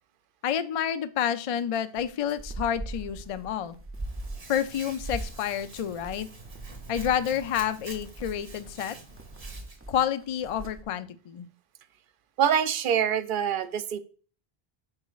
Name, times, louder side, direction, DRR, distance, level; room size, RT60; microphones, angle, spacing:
voice 1, 0.4-3.8 4.5-6.3 6.9-9.0 9.9-11.5, left 9 dB, 55° left, 12 dB, 0.4 m, -29 dB
sound 1, 2.0-10.8, right 2 dB, 20° right, 0.4 m, -41 dB
Hands, 3.9-9.8, right 3 dB, 85° right, 1.6 m, -47 dB
voice 2, 12.4-14.0, right 8 dB, 60° right, 11 dB, 0.7 m, -25 dB
10.5 x 4.0 x 2.4 m, 0.41 s
omnidirectional pair, 1.0 m